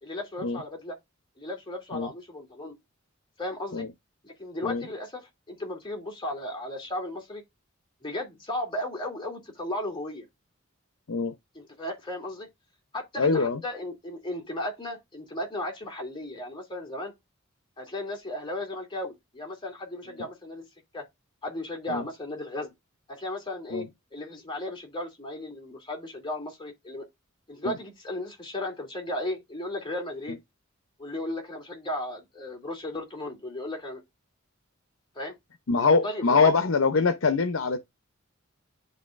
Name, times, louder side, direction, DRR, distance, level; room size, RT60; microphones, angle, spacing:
voice 1, 0.0-1.0 1.4-2.8 3.4-3.9 4.2-7.4 8.0-10.3 11.5-12.5 12.9-17.1 17.8-20.6 20.9-21.0 21.4-22.7 23.1-23.8 24.1-27.1 27.5-30.4 31.0-34.0 35.1-35.3 36.0-36.5, left 1 dB, 25° left, 2.7 m, -35 dB
voice 2, 13.2-13.6 21.9-22.0 23.7-23.9 27.6-27.7 30.3-30.4 35.7-37.8, left 4 dB, 75° left, 0.7 m, -23 dB
10.5 x 3.9 x 2.5 m
head